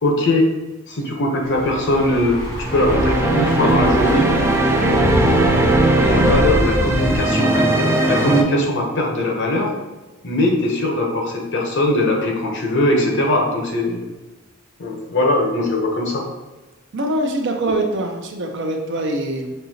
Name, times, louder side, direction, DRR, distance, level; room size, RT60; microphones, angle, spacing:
voice 1, 0.0-0.5 0.9-2.4 2.7-4.3 4.8-5.6 5.9-9.7 10.2-14.0 14.8-16.2, left 1 dB, 60° left, 0 dB, 0.8 m, -20 dB
Thunder / Bicycle, 1.4-7.2, left 1 dB, 85° left, 1.4 m, -24 dB
sound 1, 2.6-8.4, right 2 dB, 10° right, 0.4 m, -18 dB
voice 2, 16.9-19.5, right 1 dB, 55° right, 3 dB, 0.6 m, -23 dB
5.4 x 2.7 x 2.8 m, 1.2 s
head